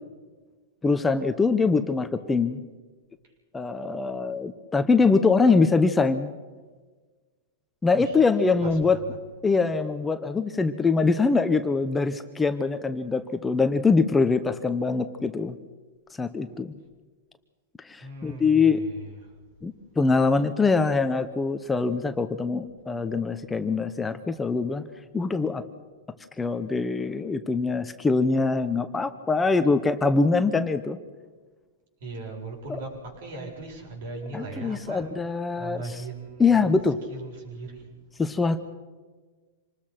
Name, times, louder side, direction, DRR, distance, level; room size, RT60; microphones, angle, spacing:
voice 1, 0.8-2.6 3.5-6.4 7.8-9.0 9.4-15.6 16.2-16.8 17.8-18.8 19.6-24.8 25.1-25.6 26.4-31.0 32.7-32.8 34.3-36.0 36.4-37.0 38.2-38.6, left 4 dB, 10° left, 9 dB, 0.9 m, -23 dB
voice 2, 8.6-9.2 18.0-19.3 32.0-35.1 35.6-36.7 37.1-37.9, right 3 dB, 60° right, 1 dB, 8.0 m, -39 dB
26.5 x 20.0 x 6.0 m, 1.4 s
hypercardioid pair, 145°, 0 cm